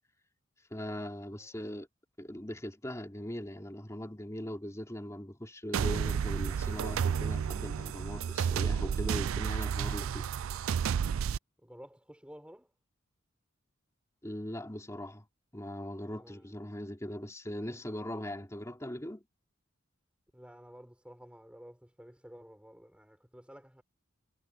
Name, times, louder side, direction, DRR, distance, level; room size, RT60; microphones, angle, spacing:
voice 1, 0.7-1.9 2.2-10.3 14.2-15.2 15.5-19.2, left 1 dB, 15° left, 3.1 m, -40 dB
sound 1, 5.7-11.4, right 7 dB, 90° right, 0.4 m, -31 dB
voice 2, 11.6-12.7 16.1-16.5 20.3-23.8, equal, 5° right, 4.8 m, -52 dB
head